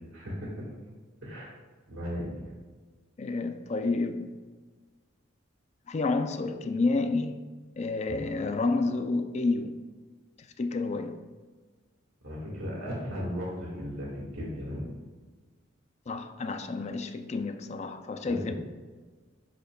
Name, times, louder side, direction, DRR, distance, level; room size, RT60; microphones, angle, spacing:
voice 1, 0.1-0.6 1.2-1.5 1.9-2.2 8.1-8.3 12.2-14.8 18.3-18.5, equal, 80° right, 1.8 m, -36 dB
voice 2, 3.2-4.4 5.9-7.4 7.8-9.8 10.6-11.2 16.1-18.5, left 3 dB, 35° left, 0.4 m, -30 dB
10.0 x 4.4 x 2.3 m
head